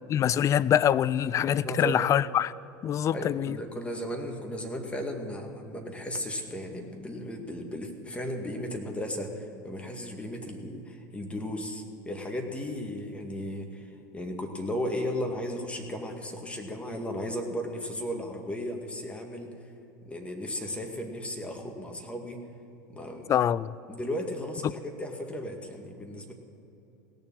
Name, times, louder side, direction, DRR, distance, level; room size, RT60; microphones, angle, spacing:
voice 1, 0.1-2.5 2.8-3.6 23.3-23.7, left 10 dB, 30° left, 0.4 m, -24 dB
voice 2, 1.6-2.0 3.1-13.8 14.1-19.5 20.1-22.4 22.9-23.3 23.9-26.3, equal, 10° left, 2.0 m, -35 dB
17.5 x 7.0 x 8.6 m
hypercardioid pair, 90°, 10 cm